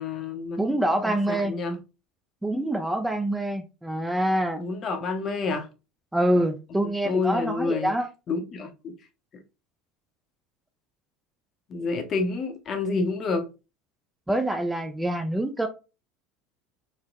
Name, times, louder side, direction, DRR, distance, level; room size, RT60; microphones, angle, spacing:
voice 1, 0.0-0.8 1.0-1.8 4.6-5.7 6.4-6.5 6.8-7.9 8.3-8.9 11.7-13.5, left 4 dB, 45° left, 0.6 m, -29 dB
voice 2, 0.6-1.5 2.4-4.6 6.1-8.1 14.3-15.7, right 1 dB, 5° right, 0.4 m, -25 dB
3.1 x 2.0 x 2.4 m
hypercardioid pair, 80°, 0 cm